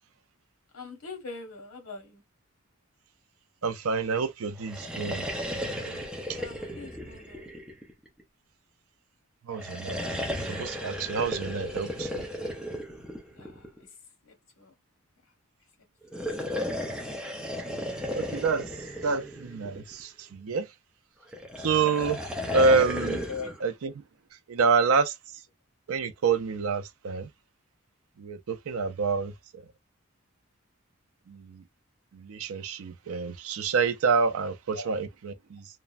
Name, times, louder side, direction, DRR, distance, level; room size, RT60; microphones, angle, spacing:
voice 1, 0.7-2.2 6.4-7.6 13.4-13.9 14.2-14.7 16.1-16.4 23.3-23.5 34.7-34.9, left 4 dB, 85° left, 1.0 m, -42 dB
voice 2, 3.6-5.3 5.8-6.0 6.3-6.4 9.5-10.0 10.5-12.2 18.2-18.7 19.0-20.7 21.6-22.2 22.5-23.3 23.6-23.9 24.5-25.1 25.9-27.3 28.2-29.6 31.3-31.6 32.1-35.7, right 4 dB, 80° right, 0.5 m, -27 dB
sound 1, 4.6-8.2 9.5-13.8 16.0-20.0 21.3-23.6, equal, 5° right, 0.6 m, -34 dB
3.1 x 2.1 x 2.4 m
head